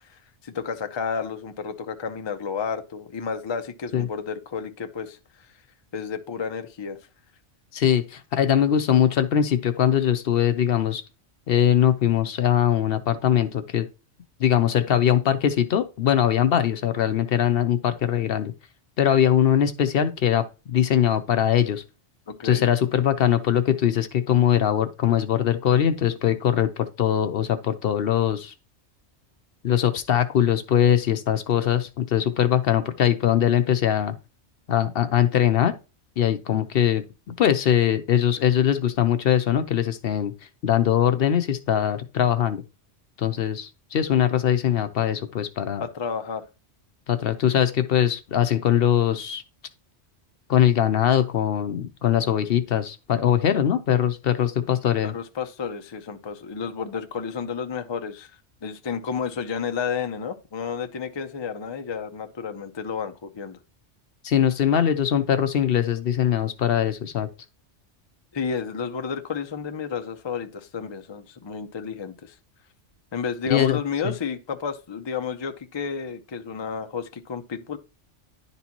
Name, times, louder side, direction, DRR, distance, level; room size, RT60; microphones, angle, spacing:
voice 1, 0.0-5.2 5.9-7.0 22.3-22.6 45.8-46.4 55.0-58.3 58.6-63.6 68.3-72.3 73.1-77.8, left 6 dB, 35° left, 0.4 m, -31 dB
voice 2, 7.7-11.0 11.5-13.9 14.4-18.5 19.0-21.8 22.4-28.5 29.6-34.1 34.7-35.7 36.2-40.3 40.6-42.6 43.2-45.8 47.1-49.4 50.5-55.1 64.2-67.3 73.5-73.8 74.0-74.1, left 9 dB, 60° left, 0.7 m, -21 dB
10.5 x 4.1 x 2.9 m
omnidirectional pair, 1.2 m